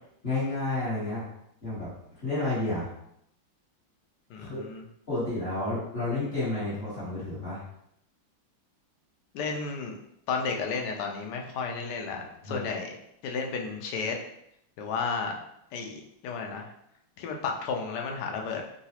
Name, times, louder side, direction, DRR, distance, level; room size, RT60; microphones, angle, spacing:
voice 1, 0.2-1.2 1.6-1.9 2.2-2.9 4.4-4.6 5.1-7.6 12.4-12.6, left 2 dB, 35° left, -9 dB, 1.2 m, -30 dB
voice 2, 4.3-4.8 9.3-10.0 10.3-12.9 13.2-14.2 14.8-15.4 15.7-16.7 17.2-18.6, left 5 dB, 70° left, 2 dB, 1.0 m, -32 dB
3.8 x 2.3 x 2.8 m, 0.75 s
omnidirectional pair, 2.2 m